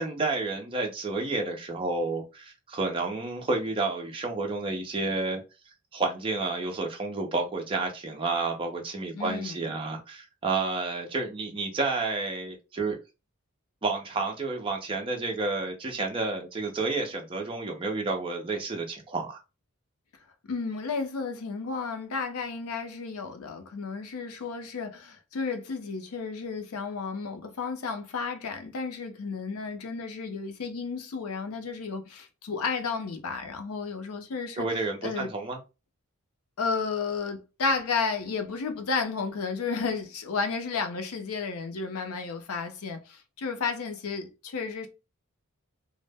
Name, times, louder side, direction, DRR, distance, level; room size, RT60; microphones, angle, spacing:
voice 1, 0.0-5.4 5.9-13.0 13.8-19.4 34.6-35.6, right 3 dB, 25° right, 0.4 m, -30 dB
voice 2, 9.1-9.6 20.5-34.7 35.0-35.3 36.6-44.9, left 4 dB, 75° left, 0.5 m, -32 dB
2.0 x 2.0 x 3.3 m
head